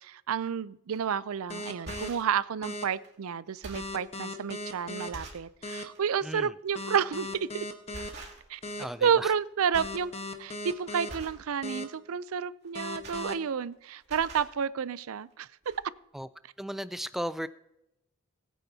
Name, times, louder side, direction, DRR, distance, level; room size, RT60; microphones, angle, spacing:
voice 1, 0.0-7.5 8.5-8.6 9.0-10.1 10.4-15.5, right 7 dB, 80° right, 0.4 m, -30 dB
sound 1, 0.9-1.1 1.7-2.4 3.0-3.1 3.5-4.0 4.6-4.7 5.1-5.5 5.9-6.1 7.3-7.5 7.9-8.7 9.0-9.4 9.7-10.0 10.4-10.6 11.1-11.5 12.6-13.7 14.0-14.5 15.3-15.4 15.6-15.8, right 2 dB, 50° right, 2.6 m, -45 dB
sound 2, 1.5-2.1 2.6-2.8 3.7-5.1 5.6-5.8 6.7-8.1 8.6-8.8 9.7-11.1 11.6-11.8 12.7-13.3, left 1 dB, 30° left, 1.1 m, -37 dB
voice 2, 8.8-9.3 16.1-16.3 16.6-17.5, equal, ahead, 0.3 m, -35 dB
21.0 x 9.2 x 2.8 m
head